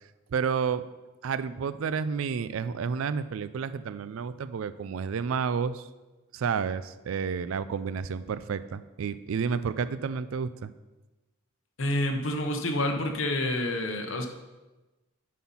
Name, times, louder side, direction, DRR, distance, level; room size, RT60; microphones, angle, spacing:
voice 1, 0.3-0.9 1.2-5.9 6.3-10.7, right 6 dB, 80° right, 14 dB, 0.4 m, -30 dB
voice 2, 11.8-14.3, left 1 dB, 70° left, 3 dB, 0.9 m, -28 dB
9.3 x 4.3 x 5.6 m, 1.1 s
head